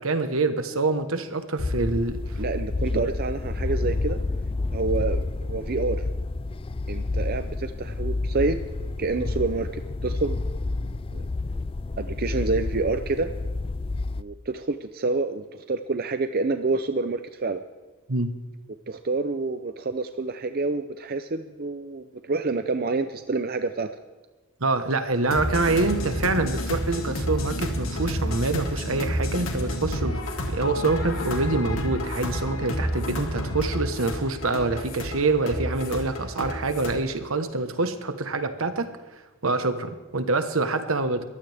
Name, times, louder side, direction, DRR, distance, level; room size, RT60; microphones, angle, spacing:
voice 1, 0.0-2.4 2.9-3.1 18.1-18.3 24.6-30.2 30.5-38.9 39.4-41.2, right 3 dB, 75° right, 9 dB, 1.4 m, -26 dB
sound 1, 1.6-14.2, left 2 dB, 25° left, 0.4 m, -29 dB
voice 2, 2.4-4.2 4.7-6.1 6.9-10.4 10.9-11.2 12.0-13.3 14.2-17.6 18.9-23.9, right 3 dB, 45° right, 9 dB, 0.6 m, -28 dB
sound 2, 25.3-36.9, equal, 70° left, 2.6 m, -30 dB
22.0 x 16.0 x 3.6 m, 1.3 s
head